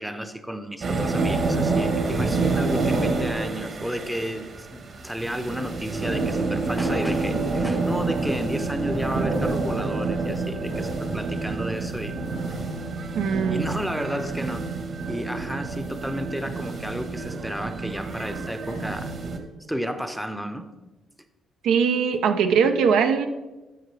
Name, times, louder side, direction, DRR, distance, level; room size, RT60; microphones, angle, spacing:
voice 1, 0.0-12.2 13.5-14.6 15.1-19.1 19.7-20.7, equal, 5° right, 9 dB, 0.7 m, -32 dB
sound 1, 0.8-19.4, right 3 dB, 50° right, 1.3 m, -28 dB
voice 2, 13.2-13.6 21.6-23.3, right 6 dB, 80° right, 6 dB, 0.7 m, -21 dB
12.5 x 5.9 x 3.4 m, 1.1 s
cardioid pair, 90°, 0 cm